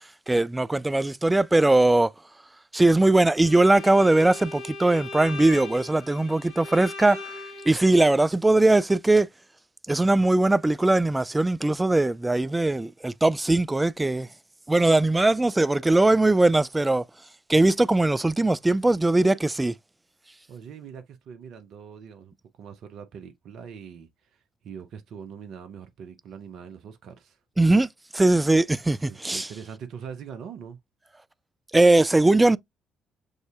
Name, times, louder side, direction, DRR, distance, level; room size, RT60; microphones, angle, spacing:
voice 1, 0.3-2.1 2.7-7.3 7.7-9.3 9.9-14.3 14.7-17.0 17.5-19.7 27.6-27.9 28.1-29.5 31.7-32.6, right 2 dB, 15° right, 0.3 m, -20 dB
Bowed string instrument, 3.4-8.1, left 2 dB, 80° left, 2.0 m, -39 dB
voice 2, 20.5-27.4 29.1-30.8, right 7 dB, 65° right, 0.6 m, -42 dB
6.4 x 2.6 x 2.4 m
hypercardioid pair, 50°, 0 cm